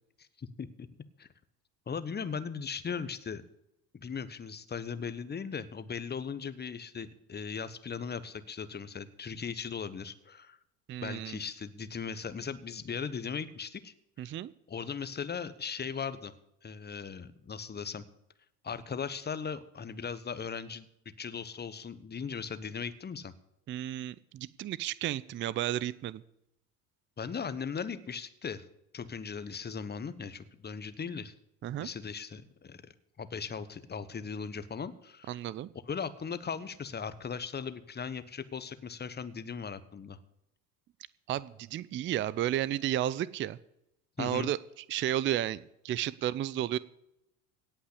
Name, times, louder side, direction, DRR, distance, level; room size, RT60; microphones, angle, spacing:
voice 1, 0.2-0.9 1.2-1.3 1.9-3.4 3.9-10.6 11.0-16.3 16.6-18.0 18.6-20.9 21.2-23.3 27.2-28.6 28.9-31.3 31.7-32.8 33.2-35.4 35.9-40.2 44.2-44.5, left 6 dB, 20° left, 14 dB, 1.1 m, -38 dB
voice 2, 10.9-11.4 14.2-14.5 23.7-26.2 31.6-31.9 35.3-35.7 41.3-43.6 44.2-44.6 44.9-46.8, right 12 dB, 25° right, 19 dB, 0.5 m, -32 dB
17.0 x 5.8 x 8.6 m, 0.83 s
hypercardioid pair, 70°, 47 cm